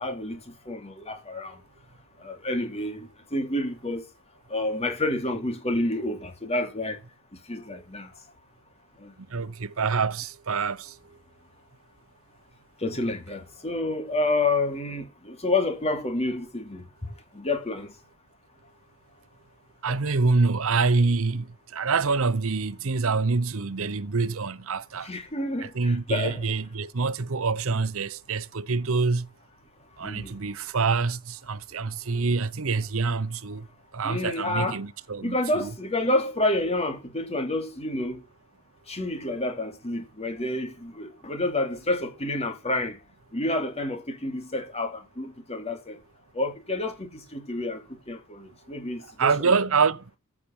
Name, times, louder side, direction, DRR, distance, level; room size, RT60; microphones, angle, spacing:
voice 1, 0.0-1.6 2.2-4.0 4.5-7.0 7.5-8.1 9.0-9.1 12.8-17.9 19.9-20.0 25.0-26.4 30.0-30.3 34.0-34.8 35.2-38.2 38.9-43.0 43.3-46.0 46.3-49.5, left 2 dB, 30° left, 2.7 m, -29 dB
voice 2, 9.3-11.0 19.8-25.1 25.7-29.3 30.0-33.7 33.9-35.7 49.2-50.0, right 4 dB, 70° right, 0.8 m, -26 dB
15.0 x 6.0 x 7.1 m
head